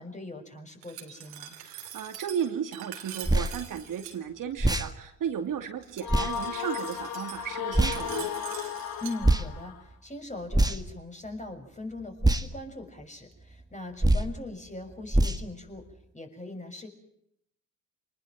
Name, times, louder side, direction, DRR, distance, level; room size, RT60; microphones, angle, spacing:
voice 1, 0.0-1.6 9.0-15.8 16.1-16.9, left 2 dB, 20° left, 4 dB, 6.5 m, -40 dB
Glass, 0.8-4.2 5.8-9.2, right 11 dB, 85° right, 3.1 m, -44 dB
voice 2, 1.6-8.3, right 8 dB, 50° right, 5 dB, 2.7 m, -34 dB
sound 1, 3.2-3.5 4.6-4.9 6.1-6.3 7.7-8.0 9.2-9.5 10.5-10.9 12.2-12.5 14.0-14.3 15.1-15.4, right 1 dB, 10° right, 1.9 m, -23 dB
sound 2, 6.0-9.8, left 7 dB, 60° left, 3.2 m, -35 dB
26.0 x 20.0 x 7.6 m, 0.73 s
hypercardioid pair, 60°, 40 cm